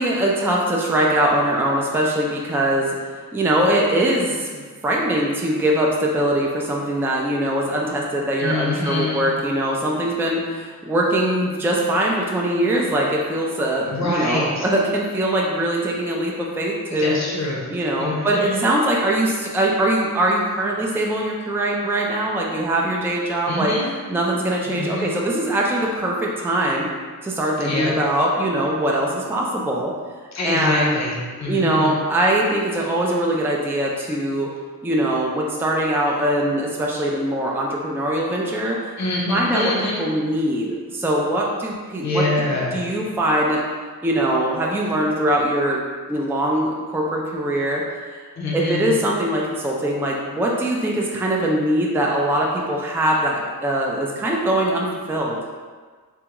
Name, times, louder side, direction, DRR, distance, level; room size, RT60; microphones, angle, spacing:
voice 1, 0.0-3.0 3.3-17.2 17.7-23.7 24.1-26.9 27.2-29.9 30.4-31.0 31.5-34.5 34.8-38.9 39.3-39.7 40.0-42.2 42.5-43.6 44.0-45.8 46.1-48.2 48.5-55.4, right 1 dB, 5° right, -2 dB, 0.4 m, -22 dB
voice 2, 8.4-9.2 13.9-14.7 16.9-17.7 18.0-18.6 23.5-23.9 24.7-25.1 27.6-27.9 30.3-32.0 39.0-40.0 42.0-42.8 48.4-49.0, left 2 dB, 50° left, -3 dB, 0.7 m, -25 dB
3.6 x 2.2 x 2.9 m, 1.5 s
wide cardioid pair, 100°, 36 cm